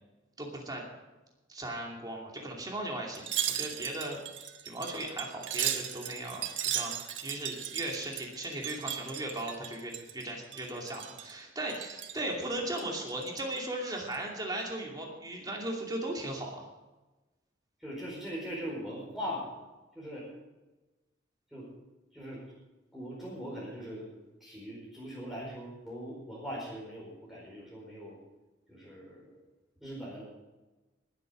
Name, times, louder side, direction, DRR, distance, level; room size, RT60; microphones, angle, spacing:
voice 1, 0.4-0.8 1.5-4.2 4.6-16.7, right 1 dB, 20° right, -1 dB, 2.7 m, -37 dB
Wind chime, 3.1-10.2 10.5-11.3 11.7-12.2 12.7-13.6 14.0-14.2, right 10 dB, 70° right, 1.4 m, -37 dB
voice 2, 17.8-19.5 19.9-20.2 21.5-21.7 22.1-22.4 22.9-24.1 24.4-28.2 28.7-29.4 29.8-30.2, equal, ahead, -7 dB, 4.6 m, -40 dB
20.0 x 8.3 x 5.2 m, 1.1 s
head